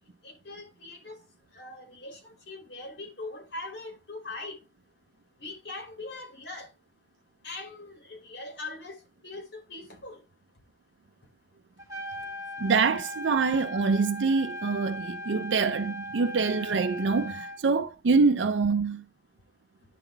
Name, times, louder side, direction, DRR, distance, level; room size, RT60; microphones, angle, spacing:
voice 1, 0.2-1.2 1.5-4.6 5.4-6.7 7.4-10.2, left 2 dB, 70° left, 2.7 m, -41 dB
Trumpet, 11.8-17.6, left 1 dB, 20° right, 1.4 m, -38 dB
voice 2, 12.6-19.0, right 4 dB, 85° right, 0.5 m, -25 dB
10.0 x 3.9 x 4.4 m
head